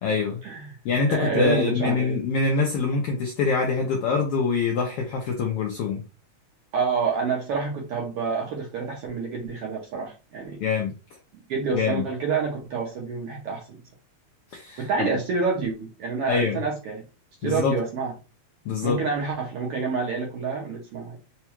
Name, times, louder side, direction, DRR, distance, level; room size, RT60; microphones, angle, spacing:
voice 1, 0.0-0.4 0.8-6.0 10.6-10.9 11.7-12.0 14.5-15.1 16.3-16.6 17.4-17.8 18.6-19.0, left 4 dB, 85° left, 1.3 m, -25 dB
voice 2, 1.1-2.1 6.7-10.6 11.5-13.8 14.8-17.0 17.4-18.1 18.8-21.2, right 5 dB, 70° right, 1.5 m, -28 dB
4.7 x 2.2 x 3.0 m
omnidirectional pair, 3.3 m